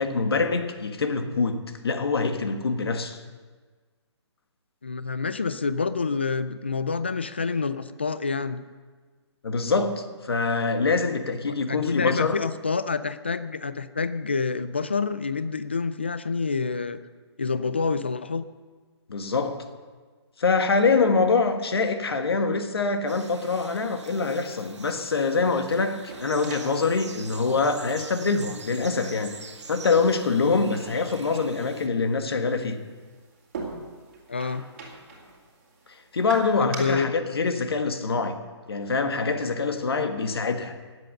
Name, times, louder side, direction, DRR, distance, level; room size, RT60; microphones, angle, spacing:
voice 1, 0.0-1.6 1.8-3.2 9.4-12.4 19.1-19.7 20.4-29.3 29.7-32.8 35.9-38.4 38.7-40.7, left 4 dB, 60° left, 7 dB, 1.5 m, -25 dB
voice 2, 4.8-8.6 11.5-17.0 17.4-18.5 34.3-34.6 36.6-37.1, left 4 dB, 25° left, 13 dB, 0.3 m, -27 dB
sound 1, 23.1-31.9, right 4 dB, 85° right, 1.6 m, -45 dB
sound 2, 25.4-36.8, right 3 dB, 25° right, 2.4 m, -44 dB
19.5 x 7.9 x 6.6 m, 1.4 s
hypercardioid pair, 180°, 15 cm